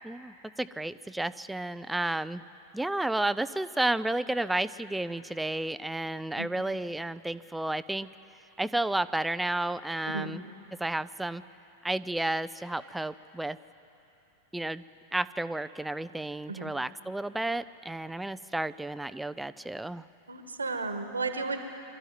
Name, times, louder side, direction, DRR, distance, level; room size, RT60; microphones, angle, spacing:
voice 1, 0.0-2.4 2.7-8.1 8.6-10.4 10.8-11.4 11.8-13.6 14.5-14.8 15.1-20.1, right 2 dB, 5° right, 15 dB, 0.5 m, -32 dB
voice 2, 20.3-21.6, right 3 dB, 75° right, 8 dB, 1.5 m, -33 dB
24.0 x 13.5 x 9.4 m, 2.8 s
figure-of-eight pair, 90°, 0 cm